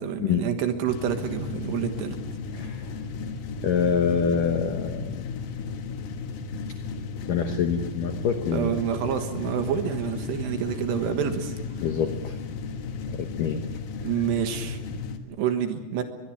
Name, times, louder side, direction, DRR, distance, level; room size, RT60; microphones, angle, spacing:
voice 1, 0.0-2.2 8.5-11.5 14.0-14.8 15.3-16.0, right 8 dB, 65° right, 7 dB, 3.3 m, -28 dB
sound 1, 0.9-15.2, left 5 dB, 65° left, 2.5 m, -35 dB
voice 2, 2.5-2.9 3.6-5.2 7.3-8.8 11.8-12.4 13.1-13.6, left 6 dB, 85° left, 6 dB, 1.9 m, -26 dB
23.5 x 21.5 x 7.3 m, 1.2 s
omnidirectional pair, 5.7 m